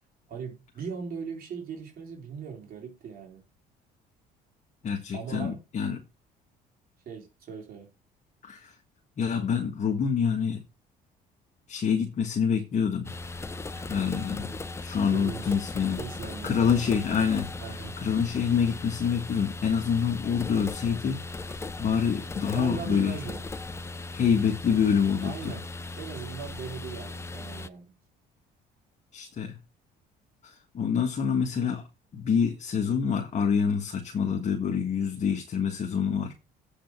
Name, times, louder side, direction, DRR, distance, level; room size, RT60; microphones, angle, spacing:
voice 1, 0.3-3.4 5.1-5.6 7.1-7.9 15.1-15.5 16.0-16.7 17.6-18.0 22.5-23.4 25.2-25.6 26.0-27.9, right 6 dB, 60° right, 4.0 m, -39 dB
voice 2, 4.8-6.0 8.4-8.7 9.2-10.6 11.7-13.1 13.8-14.5 14.8-16.0 16.4-17.5 18.0-23.2 24.1-25.5 29.1-29.6 30.4-31.9 32.1-36.3, left 7 dB, 45° left, 1.6 m, -26 dB
sound 1, 13.0-27.7, left 2 dB, 15° left, 0.6 m, -38 dB
8.0 x 5.2 x 6.1 m
cardioid pair, 110°, 17 cm